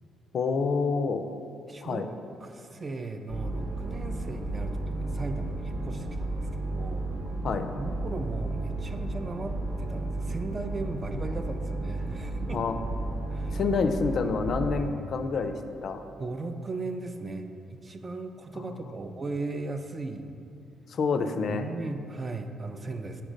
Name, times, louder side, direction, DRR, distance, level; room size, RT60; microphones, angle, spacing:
voice 1, 0.3-1.2 1.8-2.1 7.4-7.7 12.5-12.7 13.5-15.5 15.8-16.0 20.9-21.6, left 5 dB, 60° left, 8 dB, 0.4 m, -27 dB
voice 2, 1.7-2.1 2.4-7.1 7.8-12.6 13.3-13.6 16.2-20.3 21.4-23.2, right 3 dB, 30° right, 7 dB, 0.4 m, -37 dB
sound 1, 3.3-14.9, right 2 dB, 85° right, 1.1 m, -33 dB
5.1 x 4.5 x 5.0 m, 2.6 s
cardioid pair, 90°, 0 cm